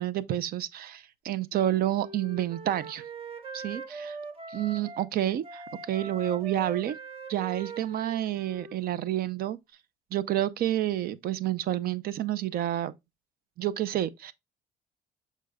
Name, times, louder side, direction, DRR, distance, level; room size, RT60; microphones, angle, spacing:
voice 1, 0.0-3.0 3.5-4.2 4.5-7.0 7.3-9.6 10.1-12.9 13.6-14.3, right 12 dB, 65° right, 0.6 m, -29 dB
Wind instrument woodwind instrument, 1.5-5.1 5.4-9.2, right 4 dB, 30° right, 1.4 m, -42 dB
6.6 x 6.2 x 2.3 m
cardioid pair, 110°, 17 cm